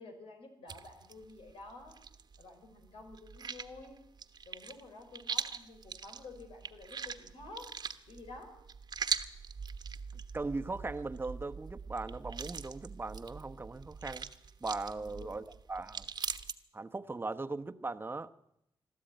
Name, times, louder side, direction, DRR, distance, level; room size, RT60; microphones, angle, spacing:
voice 1, 0.0-1.9 2.4-4.0 4.5-7.7 8.1-8.6 14.8-15.4, left 2 dB, 90° left, 4 dB, 4.7 m, -50 dB
sound 1, 0.7-2.5 2.8-16.5, right 6 dB, 50° right, 1.2 m, -42 dB
voice 2, 10.1-14.3 14.6-16.1 16.7-18.3, right 3 dB, 25° right, 9 dB, 1.0 m, -39 dB
22.0 x 13.5 x 9.2 m, 0.80 s
cardioid pair, 90°, 9 cm